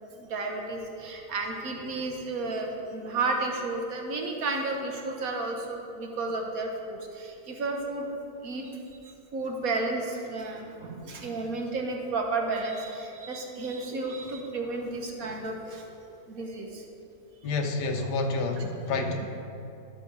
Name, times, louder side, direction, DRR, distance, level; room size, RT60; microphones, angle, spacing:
voice 1, 0.3-7.0 7.5-8.1 8.4-8.6 9.3-15.8 16.3-16.7 18.0-18.1 18.6-18.7 19.2-19.3, right 3 dB, 60° right, 2 dB, 1.4 m, -32 dB
voice 2, 17.4-19.3, left 3 dB, 90° left, 4 dB, 1.5 m, -29 dB
12.0 x 6.3 x 4.7 m, 2.7 s
omnidirectional pair, 1.8 m